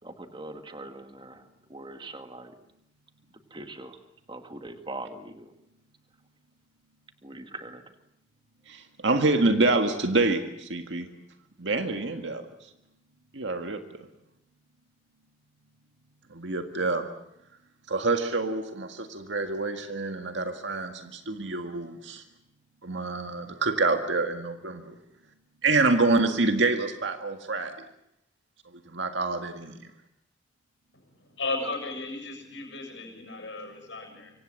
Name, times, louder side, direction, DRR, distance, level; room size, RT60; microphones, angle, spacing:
voice 1, 0.0-2.5 3.5-4.0 4.3-5.5 7.2-7.8, right 2 dB, 25° right, 7 dB, 2.1 m, -42 dB
voice 2, 8.7-11.1 11.6-12.5 13.3-14.1 16.3-17.1 17.9-22.2 22.8-25.0 25.6-27.7 28.9-29.7, right 3 dB, 75° right, 6 dB, 1.8 m, -27 dB
voice 3, 30.9-34.3, left 3 dB, 70° left, 3 dB, 7.2 m, -35 dB
25.5 x 25.0 x 7.7 m, 0.80 s
head